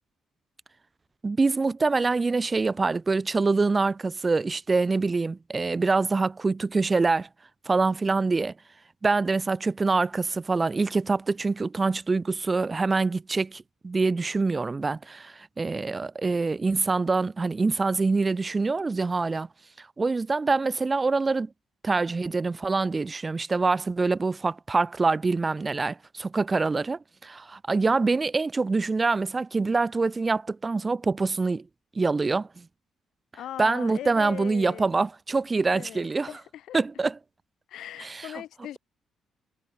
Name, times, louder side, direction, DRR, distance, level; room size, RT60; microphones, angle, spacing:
voice 1, 1.2-7.3 7.7-8.5 9.0-19.5 19.8-21.5 21.8-31.6 32.0-32.6 33.6-36.3 36.7-37.2 38.0-38.3, right 3 dB, 25° right, 0.7 m, -25 dB
voice 2, 33.3-34.9 35.7-36.8 37.7-38.8, left 12 dB, 75° left, 1.5 m, -39 dB
cardioid pair, 90°, 0 cm